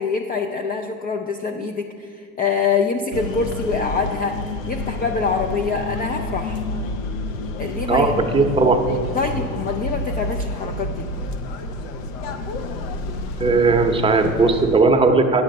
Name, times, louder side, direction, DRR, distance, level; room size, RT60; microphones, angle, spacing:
voice 1, 0.0-4.4 4.7-6.6 7.6-8.1 9.1-11.1, left 5 dB, 25° left, 4 dB, 0.4 m, -25 dB
sound 1, 3.1-14.8, left 2 dB, 80° left, 0.8 m, -29 dB
voice 2, 7.9-8.8 13.4-15.4, right 3 dB, 15° right, 3 dB, 0.7 m, -17 dB
10.0 x 6.5 x 5.2 m, 2.3 s
supercardioid pair, 120°, 39 cm